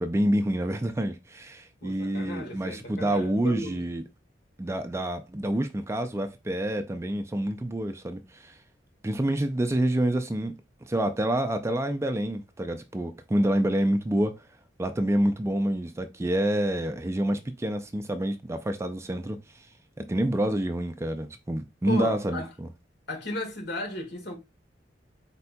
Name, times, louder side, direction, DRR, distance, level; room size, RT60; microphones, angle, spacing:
voice 1, 0.0-4.0 4.6-8.6 9.0-10.5 10.8-14.4 14.8-19.7 20.1-22.7, right 1 dB, 15° right, 0.4 m, -27 dB
voice 2, 1.8-3.8 21.9-22.5 23.1-24.4, left 1 dB, 65° left, 1.6 m, -35 dB
4.3 x 4.1 x 2.2 m
head